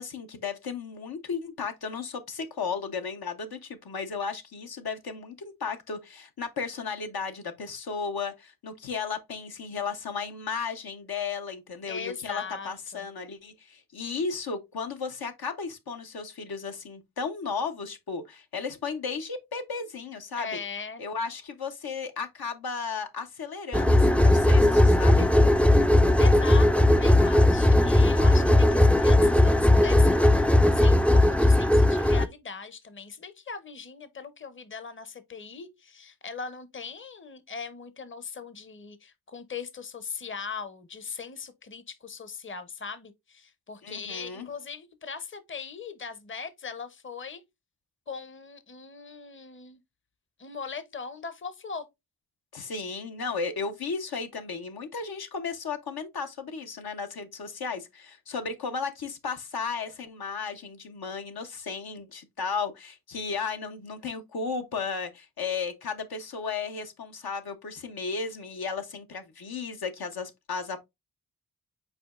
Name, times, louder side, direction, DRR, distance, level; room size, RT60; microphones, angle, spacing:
voice 1, 0.0-20.6 21.0-25.3 43.8-44.5 52.5-70.8, left 5 dB, 75° left, 0.8 m, -34 dB
voice 2, 11.9-13.0 20.3-21.0 26.2-47.4 48.1-49.8 50.4-51.9, left 5 dB, 30° left, 0.7 m, -40 dB
sound 1, 23.7-32.3, left 1 dB, 5° left, 0.3 m, -18 dB
5.0 x 4.2 x 2.4 m
cardioid pair, 45°, 38 cm